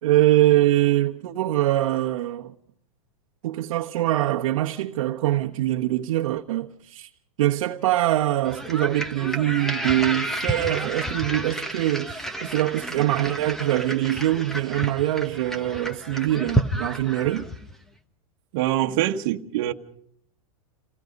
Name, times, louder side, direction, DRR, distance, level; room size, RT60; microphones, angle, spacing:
voice 1, 0.0-2.5 3.4-7.1 7.4-17.5, right 14 dB, 60° right, 1.2 m, -23 dB
sound 1, 8.4-17.8, right 1 dB, ahead, 1.1 m, -31 dB
voice 2, 18.5-19.7, right 13 dB, 45° right, 1.5 m, -24 dB
28.5 x 18.0 x 5.3 m
supercardioid pair, 165°, 18 cm